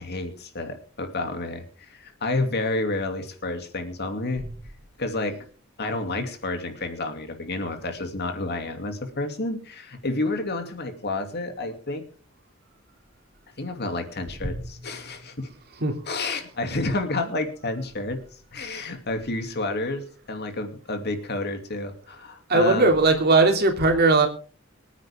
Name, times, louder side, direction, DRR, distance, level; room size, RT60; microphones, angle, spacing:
voice 1, 0.0-4.4 5.0-5.4 5.8-12.0 13.6-15.5 16.1-18.2 18.5-22.9, left 2 dB, 55° left, 6 dB, 2.6 m, -30 dB
voice 2, 22.5-24.3, right 3 dB, 50° right, 4 dB, 2.7 m, -18 dB
24.5 x 9.5 x 3.6 m, 0.40 s
head